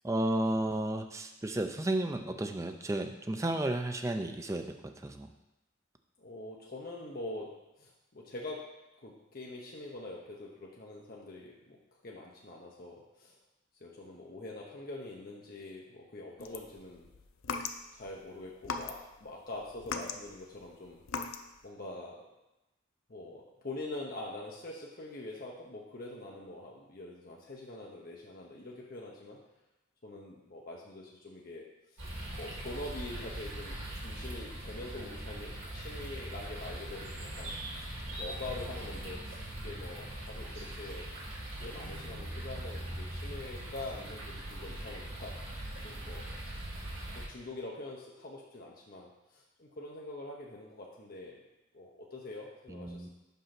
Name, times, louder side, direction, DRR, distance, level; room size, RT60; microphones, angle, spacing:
voice 1, 0.0-4.7 5.0-5.3 52.7-53.1, right 1 dB, 15° right, 6 dB, 0.4 m, -32 dB
voice 2, 6.2-8.7 9.0-13.4 13.8-17.1 17.9-21.0 21.6-22.3 23.1-29.4 30.0-31.7 31.9-32.0 32.3-37.5 38.2-41.1 41.6-45.3 45.8-46.4 47.1-51.4 51.7-53.1, left 2 dB, 45° left, -2 dB, 0.8 m, -44 dB
sound 1, 16.4-18.1 18.6-19.3 19.6-21.6, left 5 dB, 85° left, 0.6 m, -39 dB
sound 2, 32.0-47.2, right 1 dB, 70° right, 2.1 m, -41 dB
5.5 x 5.2 x 5.8 m, 0.96 s
head